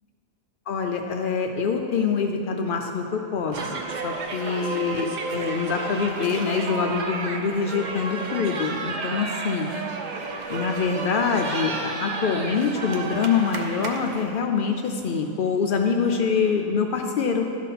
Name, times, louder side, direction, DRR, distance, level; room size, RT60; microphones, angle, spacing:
voice 1, 0.7-9.7 10.5-17.5, left 5 dB, 90° left, 3 dB, 0.4 m, -25 dB
sound 1, 3.5-14.2, right 3 dB, 55° right, 0.5 m, -32 dB
11.5 x 4.1 x 5.6 m, 2.7 s
omnidirectional pair, 1.4 m